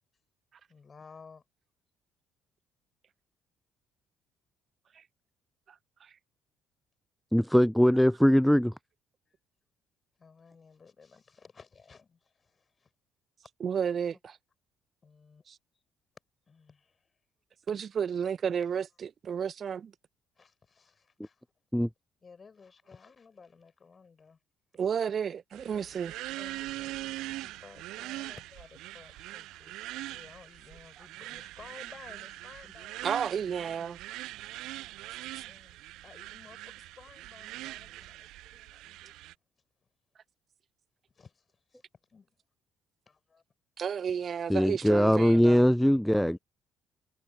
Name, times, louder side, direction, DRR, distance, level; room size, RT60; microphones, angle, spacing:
voice 1, 0.7-1.4 9.3-9.4 10.2-12.9 15.0-15.4 15.7-15.8 16.5-17.1 20.4-21.4 22.2-24.4 25.0-25.1 25.7-25.9 26.4-33.6 35.0-39.3 41.1-41.3 42.1-42.3 43.1-43.4 44.9-45.3 46.0-46.4, left 5 dB, 35° left, 4.7 m, -55 dB
voice 2, 7.3-8.7 21.7-21.9 44.5-46.4, equal, ahead, 0.3 m, -22 dB
voice 3, 13.6-14.4 15.5-15.6 17.7-19.9 24.8-26.1 33.0-34.0 43.8-45.6, right 7 dB, 45° right, 0.9 m, -32 dB
sound 1, 25.5-39.3, right 17 dB, 65° right, 0.5 m, -42 dB
figure-of-eight pair, 50°, 0 cm